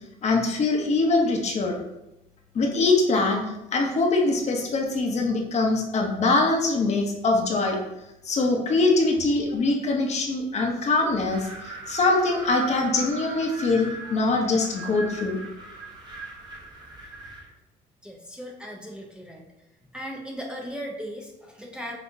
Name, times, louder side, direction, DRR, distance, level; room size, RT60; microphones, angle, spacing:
voice 1, 0.2-1.8 2.5-3.4 3.7-7.8 8.2-15.4, left 3 dB, 40° left, 1 dB, 0.8 m, -23 dB
Wind, 11.1-17.5, right 3 dB, 25° right, 1.0 m, -40 dB
voice 2, 18.0-19.4 19.9-22.0, equal, 5° right, -1 dB, 0.6 m, -37 dB
5.9 x 2.8 x 2.6 m, 0.93 s
cardioid pair, 110°, 17 cm